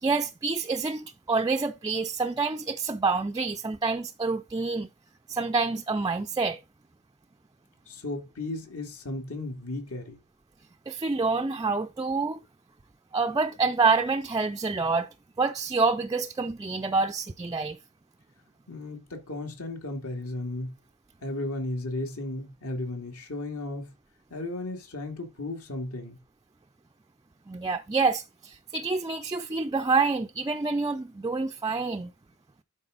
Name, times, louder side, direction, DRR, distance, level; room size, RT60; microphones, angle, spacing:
voice 1, 0.0-4.9 5.3-6.6 10.9-12.4 13.1-15.1 15.4-17.8 27.5-32.1, right 4 dB, 15° right, 0.4 m, -27 dB
voice 2, 7.9-10.2 18.7-20.7 21.2-23.9 24.3-26.2, left 2 dB, 70° left, 2.7 m, -35 dB
12.0 x 4.9 x 4.0 m
head